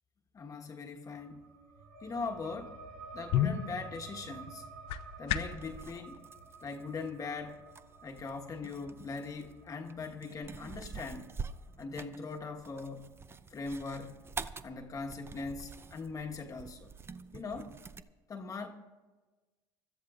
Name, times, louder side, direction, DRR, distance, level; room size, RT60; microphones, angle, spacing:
voice 1, 0.3-1.5 2.0-2.8 3.1-4.6 5.2-6.2 6.6-7.6 8.0-11.3 11.8-13.2 13.5-14.2 14.6-16.9 17.3-17.8 18.3-18.7, left 4 dB, 35° left, 1.3 m, -40 dB
sound 1, 1.1-12.2, right 4 dB, 90° right, 3.9 m, -52 dB
sound 2, 2.8-5.7, left 10 dB, 70° left, 0.7 m, -34 dB
sound 3, 5.4-18.0, right 5 dB, 25° right, 0.5 m, -47 dB
24.5 x 13.0 x 2.5 m
supercardioid pair, 80°, 10 cm